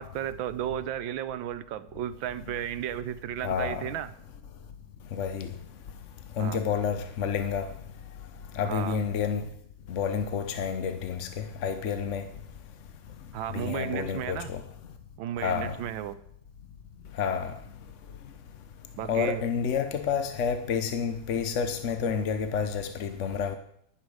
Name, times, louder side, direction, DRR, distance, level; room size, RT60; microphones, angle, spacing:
voice 1, 0.0-4.1 6.4-6.6 8.6-9.0 13.3-14.5 15.2-16.2 19.0-19.4, right 11 dB, 75° right, 1.4 m, -34 dB
voice 2, 3.4-3.8 5.1-5.5 6.4-7.7 8.5-9.5 9.9-12.3 13.5-14.6 15.4-15.8 17.2-17.5 19.1-23.5, left 6 dB, 55° left, 0.8 m, -29 dB
11.5 x 10.5 x 4.8 m
omnidirectional pair, 2.2 m